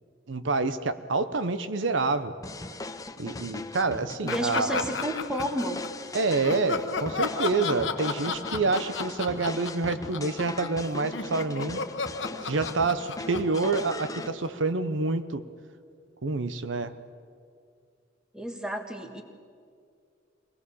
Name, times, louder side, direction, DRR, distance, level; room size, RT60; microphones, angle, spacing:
voice 1, 0.3-2.3 3.2-4.8 6.1-11.8 12.4-15.4 16.2-16.9, right 3 dB, 80° right, 12 dB, 0.8 m, -27 dB
sound 1, 2.4-14.3, left 2 dB, 20° left, 0.7 m, -39 dB
voice 2, 4.2-5.8 18.3-19.2, equal, 5° right, 4 dB, 1.7 m, -31 dB
Laughter, 4.3-6.0 6.4-10.8 11.1-14.7, left 4 dB, 75° left, 1.1 m, -34 dB
23.5 x 18.0 x 7.0 m, 2.2 s
head